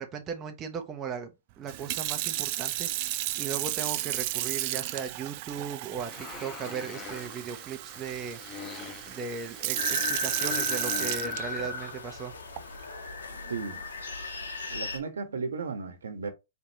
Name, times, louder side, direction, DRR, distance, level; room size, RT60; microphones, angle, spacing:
voice 1, 0.0-1.3 1.6-8.4 9.0-12.3, right 6 dB, 25° right, 0.9 m, -37 dB
Sink (filling or washing) / Fill (with liquid), 1.7-11.9 12.6-12.8, right 16 dB, 45° right, 0.4 m, -33 dB
sound 1, 6.0-11.6, left 5 dB, 25° left, 0.9 m, -43 dB
sound 2, 9.8-15.0, left 3 dB, 85° left, 1.5 m, -35 dB
voice 2, 13.5-13.8 14.7-16.3, right 5 dB, 85° right, 1.2 m, -35 dB
4.7 x 3.5 x 2.9 m
hypercardioid pair, 125°, 0 cm